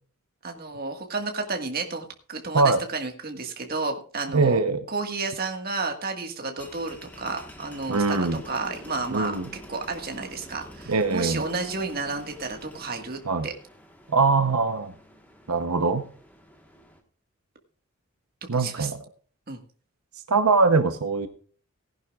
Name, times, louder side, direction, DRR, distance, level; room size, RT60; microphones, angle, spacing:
voice 1, 0.4-4.6 4.9-9.3 9.7-13.5 18.5-18.9 19.5-19.6, right 3 dB, 40° right, 4 dB, 1.7 m, -31 dB
voice 2, 4.3-4.8 7.9-8.4 9.1-9.5 10.9-11.4 13.3-13.5 14.1-14.9 15.5-16.1 18.5-19.0 20.3-21.3, right 4 dB, 85° right, 8 dB, 0.9 m, -22 dB
sound 1, 6.6-17.0, equal, 5° left, 1.4 m, -47 dB
18.0 x 11.0 x 2.4 m, 0.43 s
head